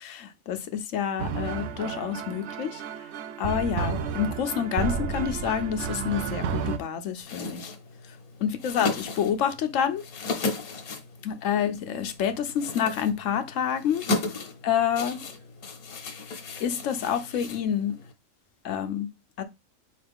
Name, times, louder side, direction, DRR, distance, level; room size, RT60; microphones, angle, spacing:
voice 1, 0.0-2.8 3.4-7.7 8.4-10.0 10.3-10.4 11.2-14.0 14.6-15.2 16.6-18.0 18.6-19.1 19.4-19.5, left 8 dB, 65° left, 1.0 m, -28 dB
sound 1, 1.2-6.8, right 6 dB, 65° right, 0.7 m, -31 dB
sound 2, 7.2-18.1, left 3 dB, 85° left, 1.4 m, -35 dB
4.3 x 3.2 x 3.4 m
omnidirectional pair, 1.5 m